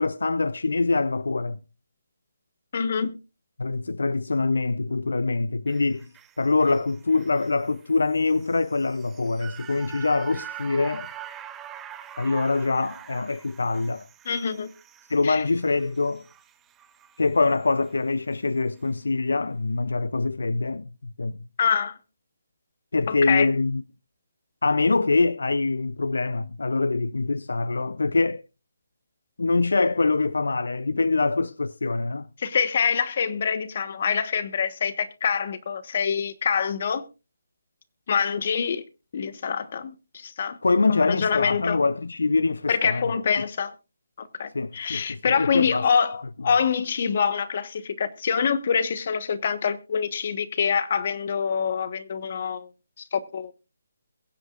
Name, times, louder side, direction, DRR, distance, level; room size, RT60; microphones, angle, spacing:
voice 1, 0.0-1.6 3.6-6.1 6.4-11.1 12.2-14.1 15.1-16.2 17.2-21.4 22.9-23.8 24.6-28.4 29.4-32.3 40.6-43.1 44.5-45.9, left 3 dB, 85° left, 0.5 m, -24 dB
voice 2, 2.7-3.1 14.2-14.7 15.2-15.4 21.6-22.0 23.1-23.5 32.4-37.0 38.1-38.8 39.1-40.6 40.9-41.8 42.7-43.7 44.2-52.7 53.1-53.5, left 6 dB, 50° left, 1.3 m, -25 dB
sound 1, 5.7-18.0 18.3-18.4, right 10 dB, 10° right, 0.7 m, -45 dB
22.5 x 8.1 x 2.5 m
hypercardioid pair, 160°, 0 cm